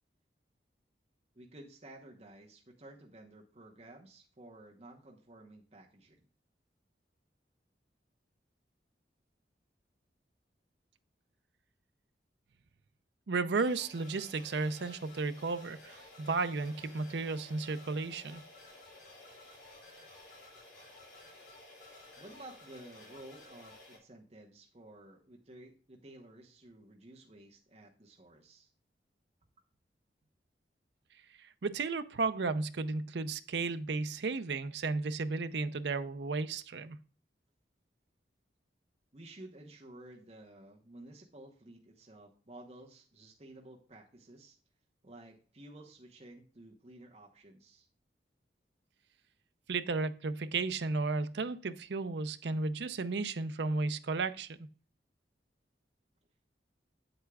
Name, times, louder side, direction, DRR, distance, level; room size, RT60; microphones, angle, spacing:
voice 1, 1.3-6.2 22.2-28.7 39.1-44.6 45.0-47.9, right 1 dB, 35° right, 1.0 m, -53 dB
voice 2, 13.3-18.4 31.4-37.0 49.7-54.6, right 3 dB, 75° right, 0.5 m, -34 dB
sound 1, 13.5-24.0, left 2 dB, 65° left, 4.2 m, -54 dB
8.1 x 7.9 x 2.3 m
head